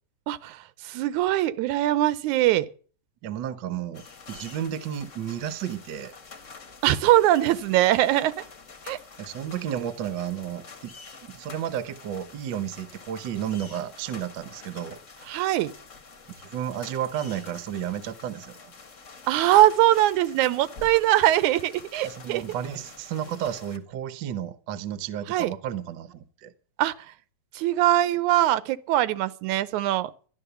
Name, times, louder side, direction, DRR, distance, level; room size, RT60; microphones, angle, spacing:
voice 1, 0.3-2.7 6.8-8.3 8.9-9.0 15.3-15.7 19.3-22.4 25.3-25.5 26.8-26.9 27.5-30.1, right 14 dB, 90° right, 2.3 m, -22 dB
voice 2, 3.2-6.1 9.2-10.9 11.3-15.0 16.4-18.7 22.0-26.5, right 10 dB, 60° right, 1.2 m, -32 dB
sound 1, 3.9-23.8, left 4 dB, 35° left, 1.4 m, -47 dB
13.0 x 12.0 x 6.9 m
omnidirectional pair, 3.3 m